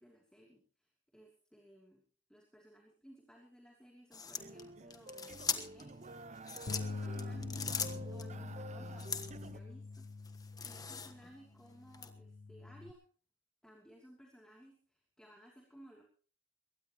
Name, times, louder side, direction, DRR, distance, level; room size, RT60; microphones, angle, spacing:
voice 1, 0.0-2.0 2.3-6.0 6.6-13.0 13.6-16.0, equal, 5° left, -1 dB, 3.0 m, -59 dB
sound 1, 4.1-5.9 6.4-8.3 9.0-9.5 9.9-11.3 11.9-12.1, left 6 dB, 20° left, 1.3 m, -40 dB
sound 2, 4.4-9.6, right 2 dB, 35° right, 0.8 m, -49 dB
Bass guitar, 6.7-12.9, left 3 dB, 55° left, 1.0 m, -45 dB
22.0 x 18.5 x 3.1 m, 0.40 s
head